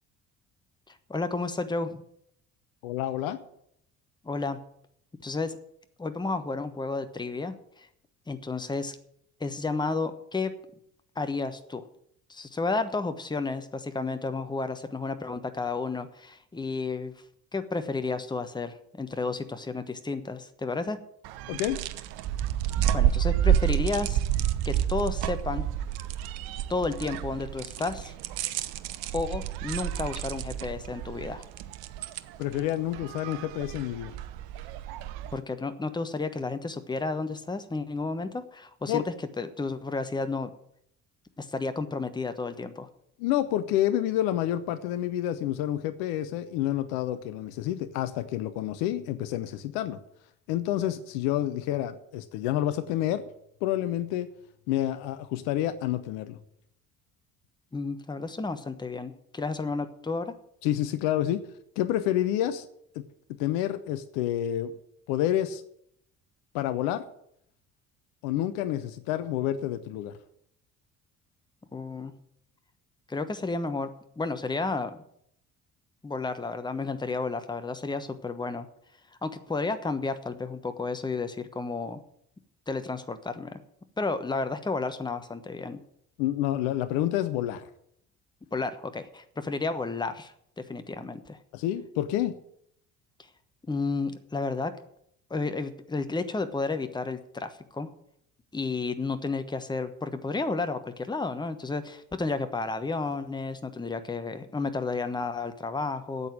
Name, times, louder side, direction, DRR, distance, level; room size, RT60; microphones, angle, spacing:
voice 1, 0.9-2.0 4.2-4.6 5.2-5.6 6.0-7.9 8.3-9.0 9.4-10.5 11.1-11.8 12.3-17.1 17.5-21.0 22.9-24.2 24.6-25.6 26.7-28.1 29.1-31.5 35.3-40.5 41.4-42.9 57.7-60.3 71.7-72.1 73.1-75.0 76.0-78.7 79.2-82.0 82.7-83.6 84.0-85.8 88.5-91.4 93.7-94.7 95.3-97.9 98.5-106.3, left 3 dB, 10° left, 9 dB, 1.1 m, -32 dB
voice 2, 2.8-3.4 21.5-21.8 32.4-34.1 38.9-39.0 43.2-50.0 50.5-53.2 53.6-54.3 54.7-56.4 60.6-61.4 61.8-62.7 62.9-63.1 63.4-64.7 65.1-65.6 66.5-67.0 68.2-70.2 86.2-87.7 91.5-92.4, left 12 dB, 55° left, 12 dB, 0.9 m, -28 dB
sound 1, 21.2-35.4, right 11 dB, 55° right, 0.8 m, -30 dB
8.8 x 8.0 x 9.2 m, 0.71 s
figure-of-eight pair, 50°, 44 cm